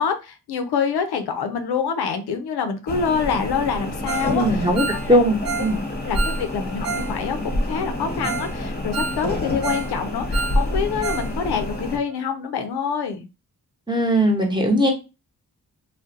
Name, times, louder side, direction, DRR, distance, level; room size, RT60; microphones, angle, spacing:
voice 1, 0.0-5.2 5.6-5.7 6.0-7.4 7.7-13.3, left 6 dB, 80° left, 7 dB, 0.5 m, -26 dB
sound 1, 2.9-12.0, left 1 dB, 25° left, 0.8 m, -28 dB
Ringtone, 4.1-4.4 4.6-7.1 7.4-7.5 7.9-8.0 8.2-8.5 8.8-9.9 10.2-11.3 11.6-11.7 12.1-12.2, right 5 dB, 65° right, 0.7 m, -30 dB
voice 2, 4.2-4.8 5.1-5.8 13.9-14.9, equal, 10° right, 1 dB, 0.9 m, -19 dB
2.4 x 2.2 x 2.5 m, 0.28 s
cardioid pair, 50°, 38 cm